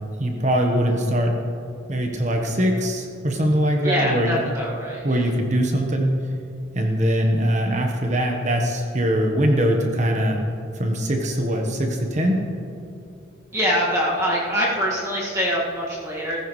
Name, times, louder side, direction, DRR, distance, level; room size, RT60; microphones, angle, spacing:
voice 1, 0.2-1.3 1.9-4.4 5.0-6.2 6.7-10.4 10.7-12.4, equal, 35° right, 2 dB, 1.1 m, -22 dB
voice 2, 3.8-5.2 13.5-16.4, equal, 15° right, -6 dB, 1.8 m, -24 dB
15.0 x 15.0 x 3.2 m, 2.5 s
head